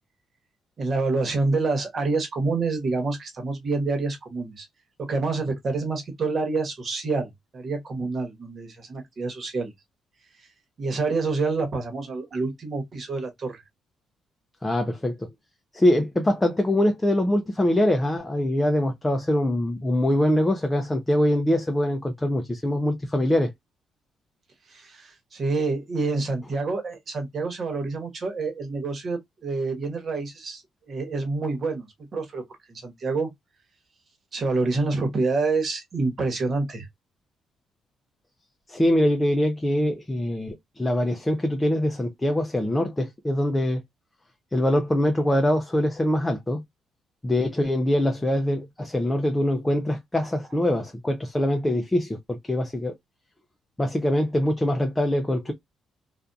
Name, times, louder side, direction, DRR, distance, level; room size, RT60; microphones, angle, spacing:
voice 1, 0.8-4.7 5.0-9.7 10.8-13.6 24.7-32.4 32.7-33.3 34.3-36.9, right 3 dB, 45° right, 1.1 m, -27 dB
voice 2, 14.6-15.3 15.7-23.5 38.7-43.8 44.5-46.6 47.2-52.9 53.8-55.5, left 1 dB, 15° left, 0.5 m, -23 dB
2.6 x 2.4 x 2.2 m
cardioid pair, 90°, 0 cm